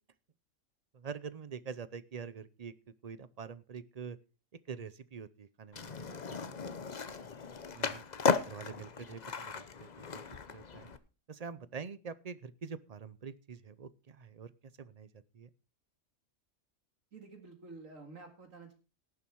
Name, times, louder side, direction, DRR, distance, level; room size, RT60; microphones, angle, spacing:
voice 1, 0.9-2.7 3.0-4.2 4.7-6.6 7.5-8.0 8.5-10.2 10.5-10.9 11.3-14.5 14.8-15.5, right 6 dB, 45° right, 16 dB, 0.5 m, -45 dB
Skateboard, 5.7-11.0, left 5 dB, 35° left, 0.8 m, -36 dB
voice 2, 7.6-7.9 17.1-18.7, right 3 dB, 70° right, 5 dB, 2.4 m, -51 dB
17.5 x 7.2 x 4.6 m, 0.34 s
omnidirectional pair, 1.4 m